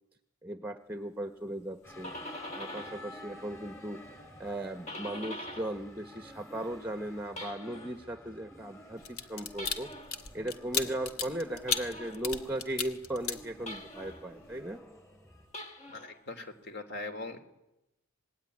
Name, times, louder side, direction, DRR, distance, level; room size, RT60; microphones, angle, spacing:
voice 1, 0.4-2.1 2.5-4.0 4.4-9.9 10.3-14.8, right 1 dB, 10° right, 7 dB, 1.0 m, -37 dB
sound 1, 1.7-3.1 3.5-5.9 6.2-8.0 9.5-10.2 11.7-12.3 13.7-14.3 15.4-16.2, left 1 dB, 30° left, 1.4 m, -44 dB
sound 2, 1.8-15.5, left 1 dB, 15° left, 6.8 m, -52 dB
sound 3, 9.0-14.0 14.4-14.6, left 6 dB, 75° left, 2.2 m, -35 dB
voice 2, 16.0-17.4, left 2 dB, 45° left, 8 dB, 3.2 m, -40 dB
26.0 x 21.0 x 9.9 m, 0.93 s
head